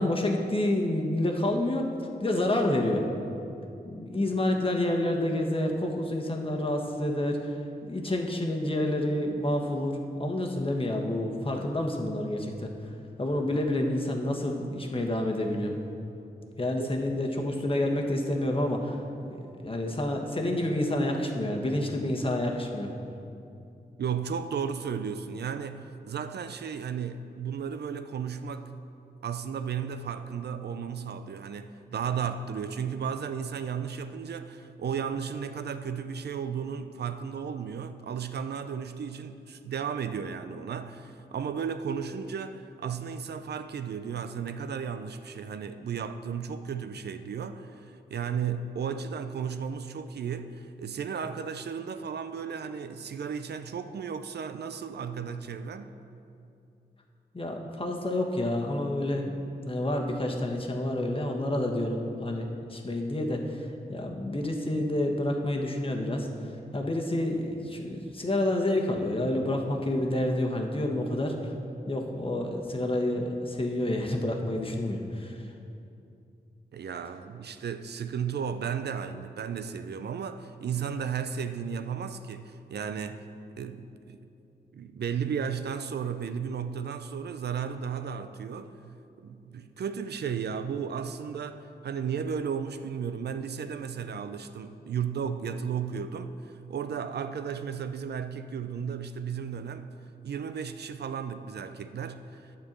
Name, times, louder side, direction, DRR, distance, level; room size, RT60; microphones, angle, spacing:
voice 1, 0.0-1.9 2.2-3.0 3.8-7.5 7.8-12.7 13.2-15.7 16.6-19.0 19.3-22.9 57.3-59.3 59.6-66.3 66.7-71.5 71.9-75.4, left 1 dB, 30° left, 2 dB, 1.3 m, -29 dB
voice 2, 24.0-28.8 29.2-55.9 76.7-83.2 83.6-84.2 84.7-88.7 89.2-99.9 100.2-102.6, right 7 dB, 70° right, 10 dB, 0.5 m, -34 dB
9.6 x 4.5 x 7.4 m, 2.6 s
cardioid pair, 50°, 18 cm